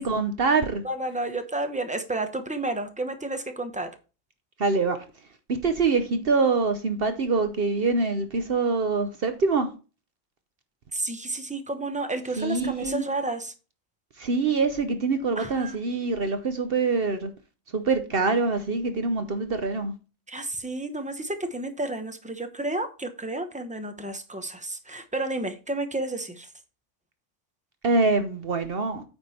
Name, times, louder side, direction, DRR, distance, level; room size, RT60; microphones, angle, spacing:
voice 1, 0.0-0.8 4.6-5.1 5.5-9.7 12.4-13.1 14.2-17.3 17.7-19.9 27.8-29.0, right 4 dB, 55° right, 1.0 m, -25 dB
voice 2, 0.8-3.9 10.9-13.5 15.4-15.8 20.3-26.5, right 2 dB, 5° right, 0.8 m, -31 dB
9.0 x 5.1 x 4.2 m
omnidirectional pair, 1.2 m